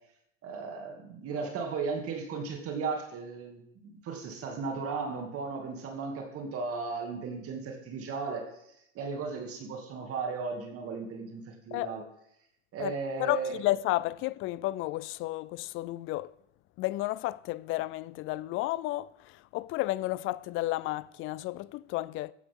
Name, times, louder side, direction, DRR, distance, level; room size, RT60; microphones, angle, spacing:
voice 1, 0.4-8.5 8.9-12.0 12.7-13.6, right 4 dB, 40° right, 2.6 m, -36 dB
voice 2, 12.8-16.3 16.8-22.3, left 17 dB, 35° left, 0.4 m, -32 dB
15.0 x 10.0 x 3.7 m
supercardioid pair, 130°, 37 cm